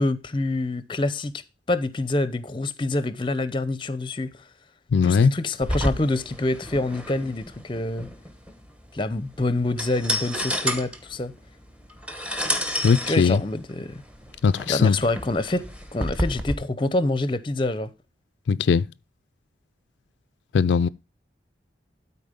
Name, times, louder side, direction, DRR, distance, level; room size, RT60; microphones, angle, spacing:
voice 1, 0.0-1.3 1.7-4.4 5.0-8.1 8.9-11.3 13.1-14.0 14.7-15.6 15.9-17.9, left 2 dB, 25° left, 0.6 m, -26 dB
voice 2, 4.9-5.3 12.8-13.4 14.4-15.0 18.5-18.8 20.5-20.9, left 5 dB, 75° left, 0.4 m, -19 dB
sound 1, 5.6-16.5, equal, 5° right, 1.0 m, -31 dB
12.5 x 4.4 x 5.1 m
head